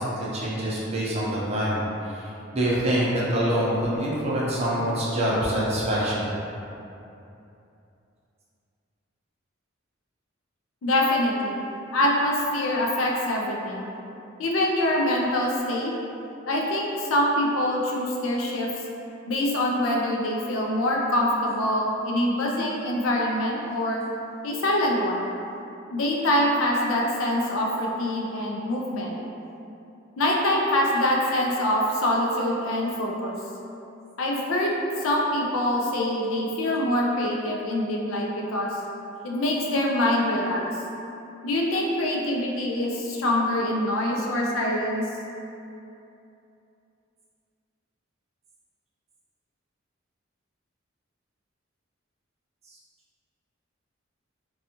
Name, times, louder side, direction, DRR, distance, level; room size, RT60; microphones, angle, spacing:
voice 1, 0.0-2.2 2.5-6.3, right 1 dB, 30° right, -6 dB, 0.5 m, -25 dB
voice 2, 10.8-11.6 11.9-13.9 14.4-15.9 16.5-18.7 19.3-24.0 24.4-25.3 25.9-29.1 30.2-33.3 34.2-38.7 39.2-40.6 41.4-45.0, left 1 dB, 90° left, -1 dB, 0.4 m, -24 dB
2.6 x 2.3 x 2.7 m, 2.8 s
head